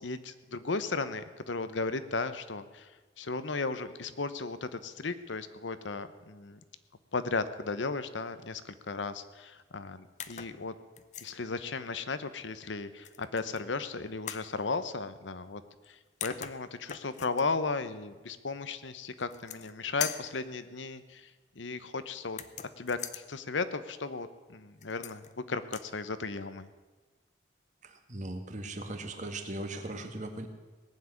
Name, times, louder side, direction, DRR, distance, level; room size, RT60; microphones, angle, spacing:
voice 1, 0.0-6.6 7.1-10.7 11.2-15.6 15.9-22.4 22.8-26.7, left 3 dB, 85° left, 12 dB, 1.0 m, -35 dB
sound 1, 10.2-10.6 11.0-11.3 13.0-13.6 14.3-14.5 15.8-15.9 16.2-17.4 19.2-19.7 20.0-20.4 22.3-23.2 24.8-25.3 25.6-25.9, left 9 dB, 40° left, 0.7 m, -40 dB
voice 2, 27.8-30.5, right 2 dB, 40° right, 6 dB, 1.7 m, -39 dB
18.5 x 7.5 x 9.6 m, 1.3 s
head